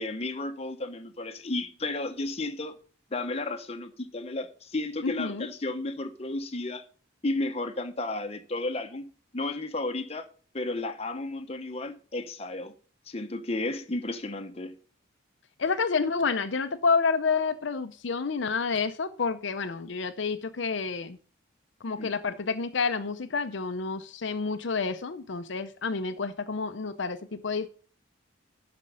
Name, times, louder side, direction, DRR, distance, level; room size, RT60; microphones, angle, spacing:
voice 1, 0.0-2.8 3.1-6.8 7.2-10.3 10.5-12.7 13.1-14.8 22.0-22.1, left 2 dB, 30° left, 0.9 m, -33 dB
voice 2, 5.0-5.5 15.6-21.2 21.8-27.7, left 4 dB, 65° left, 0.6 m, -29 dB
12.0 x 5.3 x 5.4 m
head